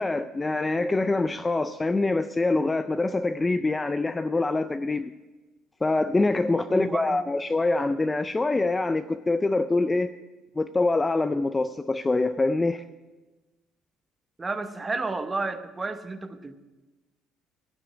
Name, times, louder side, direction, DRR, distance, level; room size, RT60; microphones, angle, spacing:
voice 1, 0.0-5.1 5.8-10.1 10.6-12.8, left 2 dB, 15° left, 11 dB, 0.3 m, -25 dB
voice 2, 6.7-7.2 14.4-16.6, right 3 dB, 15° right, 9 dB, 0.8 m, -31 dB
16.0 x 6.1 x 8.3 m, 1.2 s
cardioid pair, 155°, 0 cm